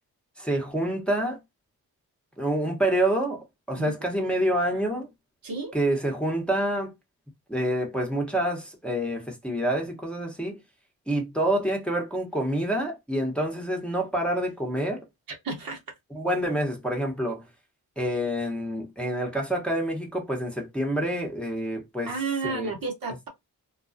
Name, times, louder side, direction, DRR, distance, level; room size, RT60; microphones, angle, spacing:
voice 1, 0.4-1.4 2.4-5.1 5.7-6.9 7.5-10.6 11.1-15.1 16.1-17.5 18.0-22.1 22.4-22.7, right 1 dB, 5° left, 0.9 m, -27 dB
voice 2, 5.4-5.7 15.4-15.8 22.1-23.3, right 3 dB, 65° right, 1.0 m, -31 dB
2.3 x 2.2 x 2.5 m
cardioid pair, 60°, 39 cm